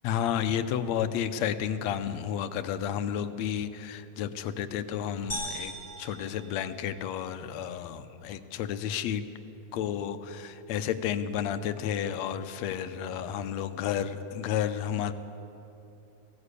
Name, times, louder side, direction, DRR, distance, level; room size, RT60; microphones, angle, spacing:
voice 1, 0.0-9.2 9.7-15.1, left 9 dB, 75° left, 11 dB, 1.9 m, -31 dB
sound 1, 5.3-7.3, equal, 15° left, 3.8 m, -39 dB
19.5 x 16.5 x 8.3 m, 2.9 s
omnidirectional pair, 3.3 m